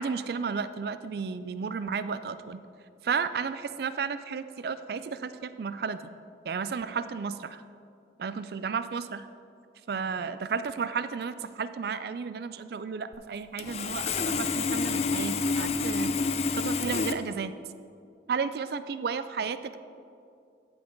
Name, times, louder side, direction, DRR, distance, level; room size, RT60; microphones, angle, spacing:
voice 1, 0.0-2.6 3.0-6.0 6.5-7.6 8.2-9.3 9.9-16.1 16.6-17.5 18.3-19.8, right 5 dB, 55° right, 13 dB, 0.3 m, -33 dB
Sawing, 13.1-13.2 13.6-17.1, left 4 dB, 35° left, 0.3 m, -28 dB
11.5 x 5.4 x 4.4 m, 2.5 s
head